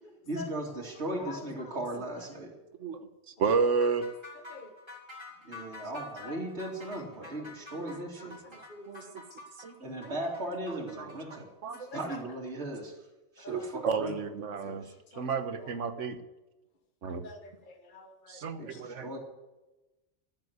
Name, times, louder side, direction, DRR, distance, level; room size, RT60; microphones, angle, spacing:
voice 1, 0.3-2.5 5.4-8.4 9.8-11.5 11.9-12.9 13.4-14.1 14.6-14.9 18.6-19.2, right 1 dB, 65° right, -2 dB, 2.8 m, -37 dB
voice 2, 1.2-1.8 4.5-4.7 6.2-6.5 7.3-7.4 7.9-9.1 11.9-12.2 13.4-13.7 14.6-14.8 15.1-15.3 15.6-15.7 17.1-18.4 18.7-18.8, left 3 dB, 45° left, 5 dB, 1.6 m, -47 dB
voice 3, 2.8-4.1 7.7-7.9 8.2-8.4 8.9-9.2 9.6-10.1 10.9-11.9 13.5-14.9 15.2-16.2 17.0-17.2 18.3-19.2, right 5 dB, 90° right, 9 dB, 1.4 m, -32 dB
sound 1, 3.5-12.0, left 2 dB, 20° right, 4.3 m, -48 dB
14.5 x 7.5 x 9.4 m, 1.0 s
omnidirectional pair, 1.2 m